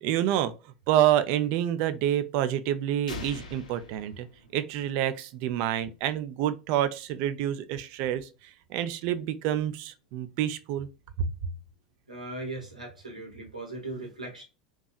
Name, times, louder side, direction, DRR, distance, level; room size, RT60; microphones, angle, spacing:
voice 1, 0.0-0.5 0.9-4.3 4.5-8.3 8.7-10.9, right 11 dB, 50° right, 0.3 m, -27 dB
sound 1, 3.1-5.0, left 2 dB, 75° left, 0.5 m, -42 dB
voice 2, 12.1-14.4, right 2 dB, 85° right, 0.9 m, -38 dB
2.7 x 2.3 x 2.3 m
figure-of-eight pair, 85°, 4 cm